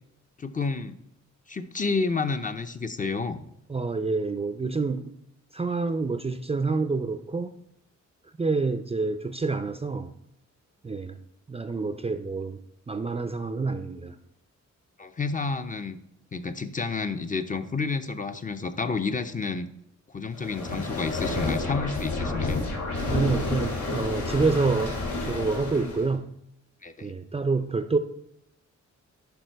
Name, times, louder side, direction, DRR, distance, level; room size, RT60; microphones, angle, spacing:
voice 1, 0.4-1.0 1.5-3.4 15.0-16.0 16.3-19.7 20.1-22.6 26.8-27.1, left 4 dB, 25° left, 9 dB, 0.6 m, -30 dB
voice 2, 3.7-5.1 5.5-7.6 8.4-10.1 10.8-11.2 11.5-12.6 12.9-14.2 23.1-26.3 27.0-28.0, right 4 dB, 20° right, 9 dB, 0.4 m, -27 dB
sound 1, 20.3-26.1, left 2 dB, 85° left, 2.6 m, -30 dB
10.5 x 4.6 x 4.5 m, 0.75 s
wide cardioid pair, 110°, 29 cm